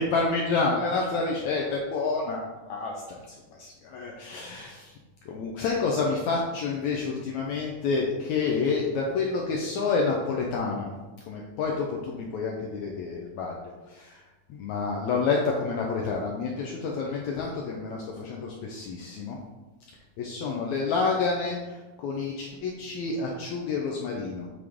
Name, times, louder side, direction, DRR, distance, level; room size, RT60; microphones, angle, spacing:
voice 1, 0.0-4.9 5.2-10.9 11.3-13.6 13.9-14.2 14.5-19.4 20.2-24.5, left 4 dB, 80° left, -1 dB, 1.6 m, -29 dB
8.2 x 4.9 x 3.6 m, 1.2 s
omnidirectional pair, 4.2 m